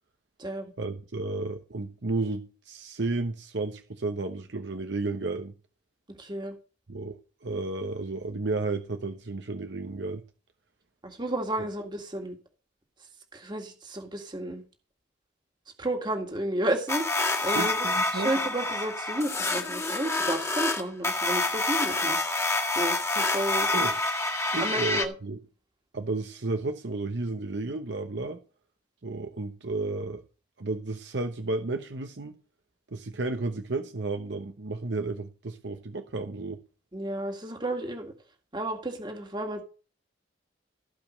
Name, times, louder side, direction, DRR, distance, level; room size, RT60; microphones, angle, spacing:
voice 1, 0.8-5.5 6.9-10.2 17.5-18.3 23.7-24.0 24.5-25.4 25.9-28.4 29.0-30.2 30.6-32.4 32.9-36.6, right 3 dB, 70° right, 0.9 m, -32 dB
voice 2, 6.2-6.6 11.0-12.4 13.3-14.6 15.8-17.1 17.4-17.8 18.1-22.5 22.8-23.7 24.6-25.1 36.9-38.1 38.5-39.6, right 1 dB, 25° right, 1.8 m, -32 dB
sound 1, 16.9-25.1, left 2 dB, 15° left, 1.7 m, -27 dB
15.0 x 5.2 x 6.3 m
head